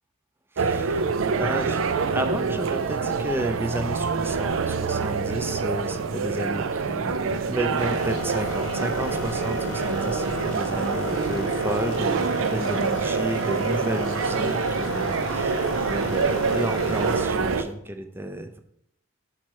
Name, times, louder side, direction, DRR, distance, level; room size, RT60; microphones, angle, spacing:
voice 1, 0.5-1.8 2.1-18.6, right 1 dB, 10° right, 7 dB, 0.4 m, -32 dB
sound 1, 0.6-17.6, right 5 dB, 80° right, 0.4 m, -26 dB
sound 2, 7.8-17.3, left 3 dB, 70° left, 0.8 m, -35 dB
6.1 x 4.3 x 4.6 m, 0.72 s
head